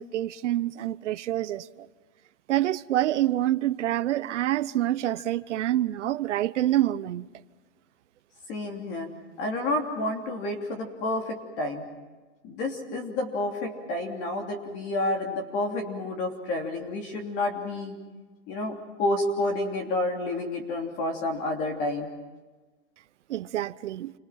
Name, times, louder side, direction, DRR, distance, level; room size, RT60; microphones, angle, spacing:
voice 1, 0.0-1.9 2.5-7.3 23.3-24.1, right 13 dB, 75° right, 1.0 m, -27 dB
voice 2, 8.5-9.1 9.4-11.8 12.4-17.9 18.5-22.1, left 2 dB, 30° left, 3.0 m, -30 dB
29.5 x 25.5 x 5.8 m
supercardioid pair, 170°, 36 cm